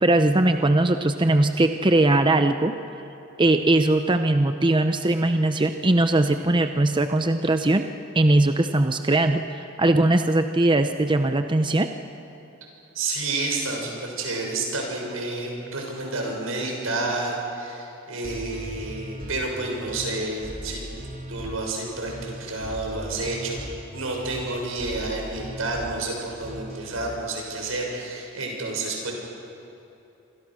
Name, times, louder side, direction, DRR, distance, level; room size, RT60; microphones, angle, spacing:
voice 1, 0.0-2.7 3.4-7.9 8.1-11.9, right 2 dB, 25° right, 7 dB, 0.7 m, -20 dB
voice 2, 12.9-20.8 21.3-29.1, right 2 dB, 85° right, 0 dB, 6.8 m, -30 dB
sound 1, 18.2-27.0, right 1 dB, 45° right, 3.0 m, -38 dB
28.0 x 25.0 x 6.4 m, 2.9 s
head